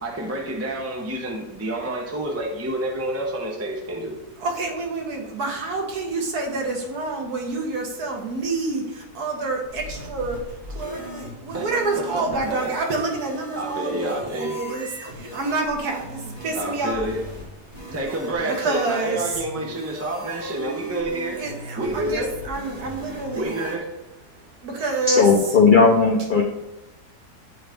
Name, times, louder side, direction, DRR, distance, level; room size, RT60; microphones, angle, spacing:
voice 1, 0.0-4.1 11.5-11.7 12.0-12.7 13.6-14.6 16.5-17.2 17.9-21.4 21.7-22.4 23.3-23.9, right 1 dB, 15° right, 0 dB, 0.5 m, -29 dB
voice 2, 4.4-10.4 10.8-14.9 15.3-17.1 18.4-19.3 21.4-23.6 24.6-25.6, right 2 dB, 75° right, 1 dB, 1.6 m, -27 dB
sound 1, 9.6-23.8, equal, 45° right, 2.4 m, -38 dB
voice 3, 25.1-26.4, left 4 dB, 60° left, -1 dB, 0.5 m, -16 dB
9.6 x 3.9 x 3.5 m, 0.96 s
omnidirectional pair, 1.7 m